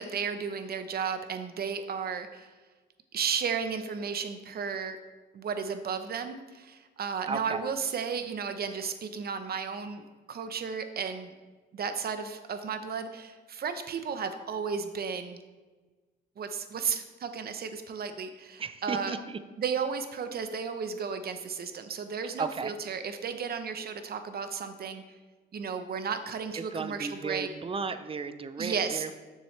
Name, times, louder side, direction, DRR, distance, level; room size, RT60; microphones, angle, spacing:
voice 1, 0.0-2.5 3.1-5.0 5.3-10.0 10.3-11.3 11.7-15.4 16.4-19.2 19.6-25.2 25.5-27.5 28.6-29.0, right 6 dB, 50° right, 8 dB, 0.8 m, -34 dB
voice 2, 7.2-7.6 18.6-19.4 22.4-22.7 26.5-29.2, right 5 dB, 30° right, 11 dB, 0.5 m, -35 dB
7.4 x 6.8 x 3.3 m, 1.3 s
cardioid pair, 90°, 20 cm